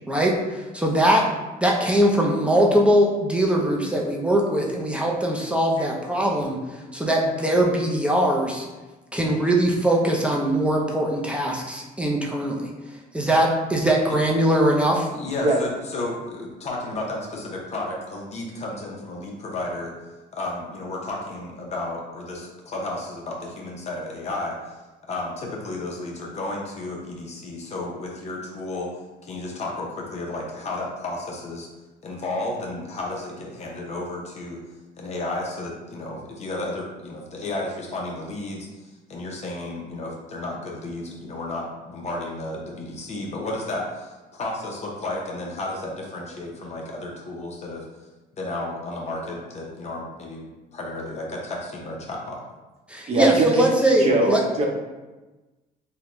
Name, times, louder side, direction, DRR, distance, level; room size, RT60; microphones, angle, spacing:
voice 1, 0.1-1.3 1.6-6.6 6.9-8.7 9.1-12.7 13.1-15.1 52.9-54.4, right 1 dB, 5° right, -1 dB, 0.5 m, -21 dB
voice 2, 15.1-19.9 20.3-24.8 25.1-28.9 29.2-31.7 32.0-34.6 35.0-47.9 48.4-50.4 50.7-52.4, left 2 dB, 40° left, -1 dB, 0.6 m, -32 dB
voice 3, 53.1-53.7 54.0-54.6, right 2 dB, 40° right, 0 dB, 0.7 m, -21 dB
3.7 x 2.1 x 3.0 m, 1.1 s
cardioid pair, 110°, 17 cm